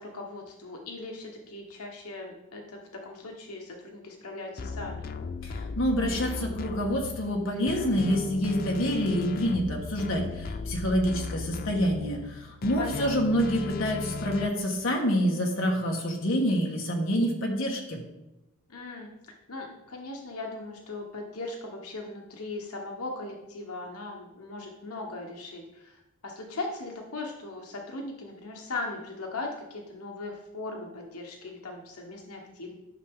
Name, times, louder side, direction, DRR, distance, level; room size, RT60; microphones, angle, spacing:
voice 1, 0.0-5.0 12.8-13.1 18.7-19.1 19.5-26.0 26.2-32.7, left 2 dB, 90° left, 1 dB, 1.3 m, -39 dB
sound 1, 4.6-14.5, left 4 dB, 40° left, 0.4 m, -37 dB
voice 2, 5.4-18.0, equal, 60° left, 0 dB, 1.5 m, -27 dB
11.0 x 6.0 x 3.7 m, 0.96 s
head